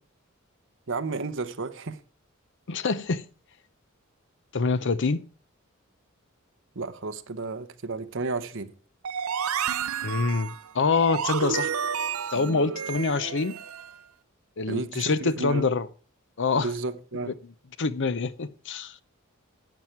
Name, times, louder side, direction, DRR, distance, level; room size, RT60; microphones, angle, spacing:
voice 1, 0.9-2.0 6.7-8.7 14.7-15.7 16.5-17.4, right 3 dB, 60° right, 1.0 m, -32 dB
voice 2, 2.7-3.3 4.5-5.2 10.0-11.7 12.3-13.6 14.6-15.9 16.4-16.7 17.2-17.3 17.8-18.9, left 4 dB, 60° left, 0.7 m, -26 dB
sound 1, 9.0-14.0, right 7 dB, 80° right, 0.6 m, -31 dB
12.0 x 9.0 x 4.6 m
head